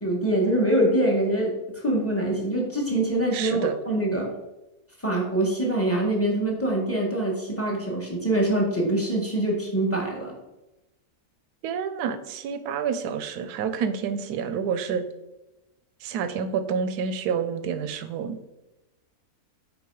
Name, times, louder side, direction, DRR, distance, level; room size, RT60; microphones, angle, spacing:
voice 1, 0.0-4.3 5.0-10.3, right 1 dB, 10° left, -1 dB, 1.1 m, -24 dB
voice 2, 3.3-3.7 11.6-15.0 16.0-18.4, right 7 dB, 85° right, 10 dB, 1.2 m, -28 dB
5.3 x 4.5 x 4.7 m, 1.0 s
omnidirectional pair, 1.6 m